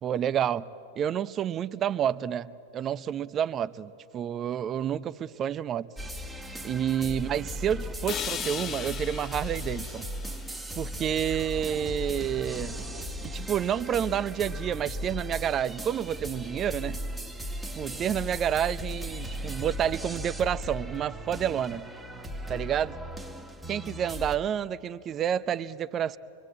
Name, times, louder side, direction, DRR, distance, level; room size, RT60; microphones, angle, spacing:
voice 1, 0.0-0.7 1.0-5.9 6.6-10.1 10.8-12.8 13.2-17.0 17.8-21.9 22.5-23.0 23.7-26.2, right 9 dB, 30° right, 16 dB, 0.7 m, -29 dB
sound 1, 6.0-24.4, equal, 5° right, 1.5 m, -37 dB
sound 2, 8.1-12.1, left 8 dB, 30° left, 0.8 m, -39 dB
24.5 x 24.5 x 8.7 m, 2.8 s
figure-of-eight pair, 95°, 0 cm